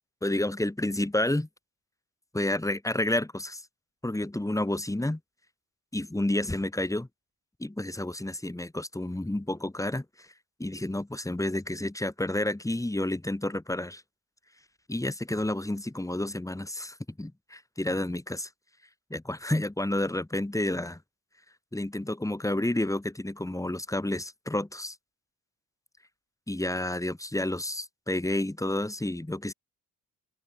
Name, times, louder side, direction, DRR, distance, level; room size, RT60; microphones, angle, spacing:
voice 1, 0.2-1.5 2.3-3.6 4.0-5.2 5.9-7.1 7.6-10.3 10.6-14.0 14.9-18.5 19.1-21.0 21.7-25.0 26.5-29.5, left 1 dB, 10° left, 2.7 m, -30 dB
cardioid pair, 85°, 37 cm